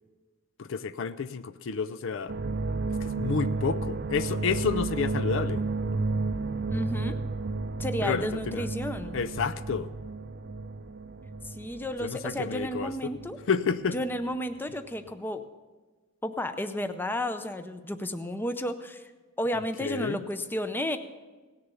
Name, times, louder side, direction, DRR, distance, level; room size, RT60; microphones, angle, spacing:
voice 1, 0.6-2.3 3.0-5.6 8.0-8.7 9.1-9.9 12.0-13.1 13.5-14.0 19.8-20.2, left 5 dB, 65° left, 12 dB, 0.5 m, -30 dB
sound 1, 2.3-14.4 14.7-15.1, right 3 dB, 50° right, 0.5 m, -32 dB
voice 2, 6.7-7.2 7.8-9.2 11.4-13.4 13.9-15.4 16.2-19.0 19.4-21.0, equal, 10° left, 9 dB, 0.6 m, -32 dB
17.5 x 6.7 x 6.9 m, 1.3 s
head